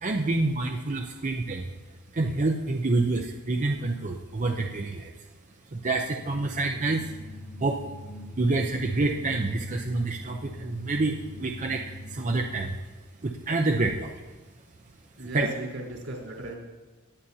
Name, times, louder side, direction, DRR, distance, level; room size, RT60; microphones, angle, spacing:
voice 1, 0.0-1.7 2.1-5.1 5.7-7.1 7.6-7.8 8.4-12.8 13.2-14.2 15.2-15.5, right 2 dB, 35° right, 2 dB, 0.7 m, -27 dB
sound 1, 6.2-12.8, left 1 dB, 5° left, 1.4 m, -43 dB
voice 2, 15.2-16.6, right 1 dB, 80° right, -3 dB, 3.8 m, -36 dB
18.5 x 10.0 x 2.8 m, 1.2 s
head